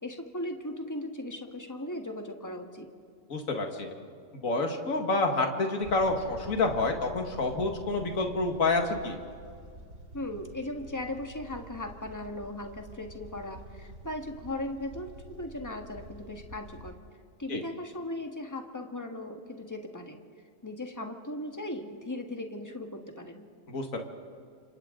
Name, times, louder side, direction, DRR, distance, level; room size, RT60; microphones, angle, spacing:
voice 1, 0.0-2.9 10.1-17.0 17.4-20.2 20.6-23.4, left 1 dB, 15° left, 4 dB, 1.7 m, -38 dB
voice 2, 3.3-3.9 4.3-9.2 17.5-17.6 23.7-24.0, left 3 dB, 75° left, 3 dB, 2.2 m, -28 dB
sound 1, 5.8-16.9, right 1 dB, 60° right, 3.3 m, -48 dB
30.0 x 27.0 x 3.9 m, 2.2 s
omnidirectional pair, 1.4 m